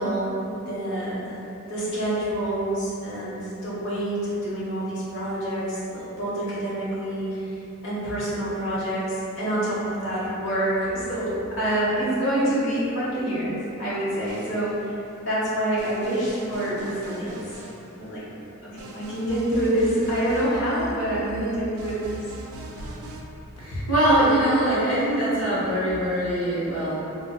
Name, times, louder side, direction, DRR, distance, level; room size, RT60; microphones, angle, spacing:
voice 1, 0.0-1.4 1.7-7.6 7.8-14.9 15.2-17.4 18.0-18.2 18.7-22.1, right 1 dB, 60° left, -10 dB, 1.0 m, -27 dB
sound 1, 14.2-15.1 15.8-18.3 18.8-23.2, right 2 dB, 90° right, 0.4 m, -41 dB
voice 2, 23.6-26.9, right 1 dB, 90° left, -11 dB, 0.8 m, -22 dB
4.1 x 2.2 x 2.3 m, 2.9 s
head